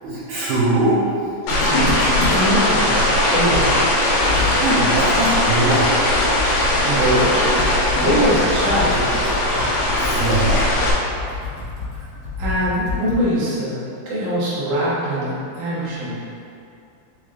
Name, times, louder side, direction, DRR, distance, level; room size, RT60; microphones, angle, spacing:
voice 1, 0.0-1.0 4.6-5.9 10.0-10.6, right 2 dB, 80° right, -9 dB, 2.2 m, -21 dB
sound 1, 1.5-10.9, left 1 dB, 75° left, 2.1 m, -19 dB
Computer keyboard, 1.5-2.7 3.1-3.2 3.5-13.4, left 4 dB, 60° left, 2.6 m, -29 dB
voice 2, 1.6-2.1 2.3-3.7 6.8-7.4 7.9-9.1 12.4-13.8 14.1-16.2, equal, 65° right, -9 dB, 2.2 m, -22 dB
6.6 x 3.0 x 2.4 m, 2.5 s
omnidirectional pair, 4.2 m